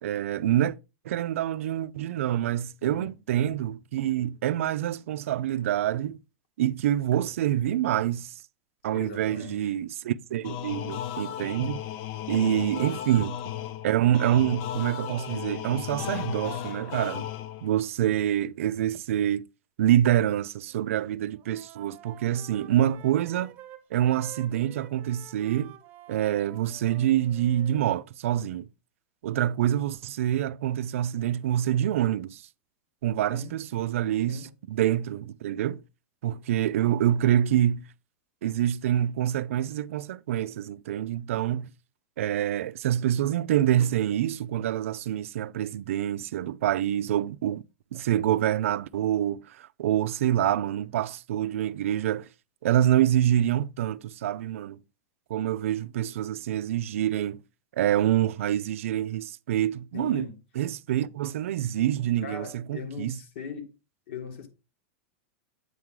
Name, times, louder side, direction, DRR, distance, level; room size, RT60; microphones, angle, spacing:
voice 1, 0.0-0.7 1.0-6.2 6.6-8.3 8.8-11.8 12.3-13.4 13.8-17.3 17.6-19.4 19.8-23.5 23.9-25.7 26.1-28.7 29.2-32.4 33.0-35.8 36.2-37.8 38.4-41.7 42.2-47.6 47.9-52.3 52.6-54.8 55.3-57.4 57.8-60.3 60.6-63.2, right 11 dB, 75° right, 0.4 m, -26 dB
voice 2, 2.8-3.2 8.9-9.7 12.4-13.1 33.3-33.6 34.3-34.6 59.9-60.4 62.2-63.7 64.1-64.5, left 5 dB, 60° left, 1.8 m, -40 dB
sound 1, 10.4-17.8, left 11 dB, 40° left, 0.5 m, -35 dB
Wind instrument woodwind instrument, 20.6-21.0 21.3-27.9, right 13 dB, 30° right, 1.2 m, -49 dB
8.2 x 4.6 x 3.7 m
supercardioid pair, 155°, 7 cm